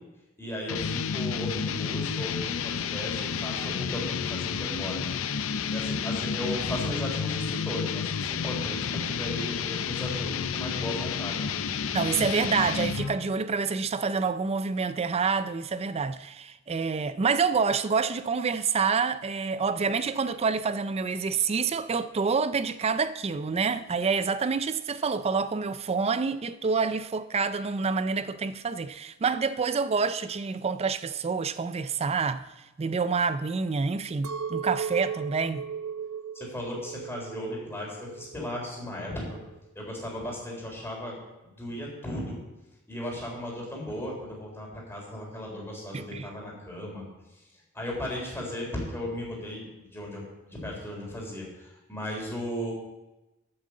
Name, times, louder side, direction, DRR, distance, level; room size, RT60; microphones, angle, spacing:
voice 1, 0.4-5.0 5.3-5.4 5.7-11.6 36.3-39.4 39.8-41.1 41.4-42.4 42.9-47.1 47.7-52.7, left 1 dB, 10° left, 3.6 m, -36 dB
sound 1, 0.7-13.2, left 6 dB, 70° left, 0.5 m, -31 dB
voice 2, 11.9-32.5 32.8-35.6 45.9-46.3, right 5 dB, 30° right, 0.4 m, -27 dB
Chink clink, 34.2-38.5 39.0-39.6, right 7 dB, 90° right, 0.6 m, -36 dB
8.8 x 7.4 x 7.5 m
head